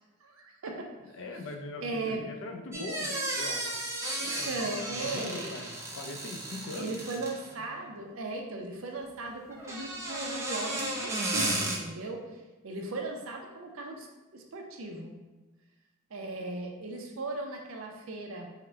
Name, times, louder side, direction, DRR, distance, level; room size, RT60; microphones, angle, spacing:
voice 1, 0.2-0.9 1.8-2.2 2.7-2.8 4.2-5.5 6.8-12.2 12.6-14.1 14.3-15.2 16.1-18.5, right 2 dB, 75° right, 2 dB, 0.6 m, -37 dB
voice 2, 1.0-3.8 4.2-7.0, left 2 dB, 65° left, 4 dB, 0.5 m, -41 dB
sound 1, 2.7-7.5 9.5-11.8, right 1 dB, 15° right, 0.4 m, -34 dB
3.7 x 2.1 x 4.4 m, 1.2 s
head